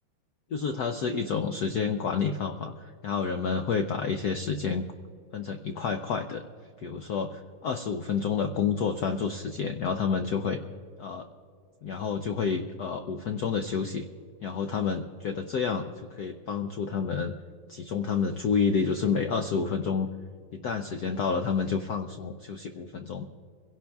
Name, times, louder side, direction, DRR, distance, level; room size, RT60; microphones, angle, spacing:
voice 1, 0.5-4.8 5.3-6.4 6.8-10.6 11.0-11.3 11.8-14.1 14.4-17.3 17.7-20.1 20.5-23.3, left 6 dB, 75° left, 6 dB, 0.9 m, -29 dB
25.0 x 17.0 x 2.3 m, 2.1 s
omnidirectional pair, 2.4 m